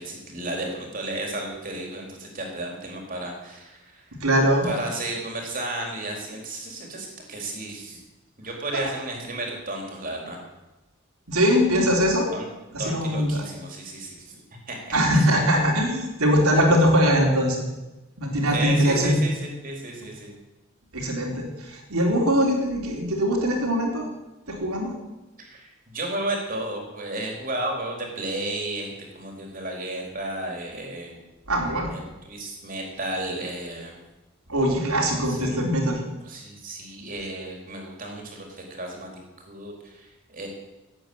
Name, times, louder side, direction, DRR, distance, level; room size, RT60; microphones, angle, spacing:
voice 1, 0.0-4.1 4.6-8.0 8.4-10.4 11.7-11.9 12.3-12.5 12.8-15.3 18.5-20.3 25.4-28.9 29.1-31.2 31.9-34.0 35.1-35.7 36.2-39.1 39.5-40.5, right 2 dB, 40° right, 1 dB, 3.9 m, -33 dB
voice 2, 4.2-4.7 11.3-12.3 12.7-13.4 14.9-17.6 18.2-19.2 20.9-24.1 24.5-24.9 31.5-31.9 34.5-36.0, equal, 90° right, 1 dB, 3.7 m, -22 dB
16.5 x 8.8 x 8.0 m, 1.1 s
head